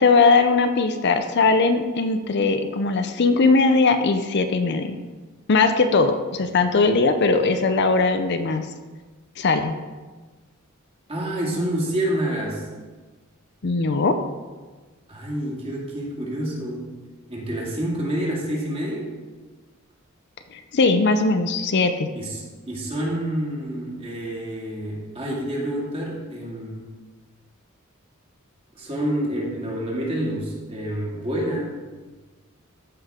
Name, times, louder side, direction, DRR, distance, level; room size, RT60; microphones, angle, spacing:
voice 1, 0.0-5.0 5.5-8.7 9.4-9.8 13.6-14.2 20.5-22.1, left 3 dB, 50° left, 8 dB, 0.5 m, -19 dB
voice 2, 11.1-12.7 15.1-16.9 17.3-19.1 22.1-26.8 28.8-31.6, right 1 dB, 25° right, -3 dB, 2.1 m, -28 dB
13.5 x 5.6 x 3.6 m, 1.3 s
head